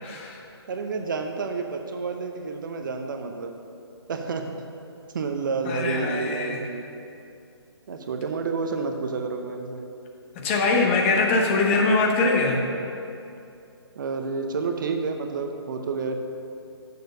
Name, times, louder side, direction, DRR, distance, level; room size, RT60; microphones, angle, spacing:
voice 1, 0.0-0.4 5.6-6.6 10.3-12.6, left 3 dB, 30° left, 1 dB, 1.0 m, -22 dB
voice 2, 0.7-3.5 4.1-4.5 5.1-6.8 7.9-9.8 14.0-16.2, right 4 dB, 50° right, 5 dB, 0.7 m, -30 dB
6.8 x 6.5 x 6.5 m, 2.6 s
figure-of-eight pair, 140°, 14 cm